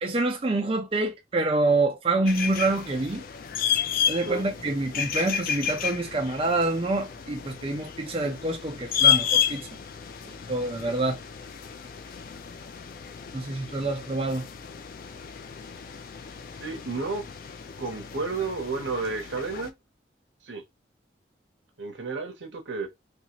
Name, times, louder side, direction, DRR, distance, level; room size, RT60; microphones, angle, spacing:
voice 1, 0.0-3.2 4.1-9.7 10.3-11.2 13.3-14.5, right 2 dB, 30° right, 0.4 m, -27 dB
sound 1, 2.3-19.7, left 9 dB, 50° left, 0.3 m, -31 dB
voice 2, 16.6-17.2 17.8-19.7 20.5-20.6 21.8-22.9, right 4 dB, 85° right, 0.8 m, -31 dB
2.7 x 2.4 x 2.8 m
head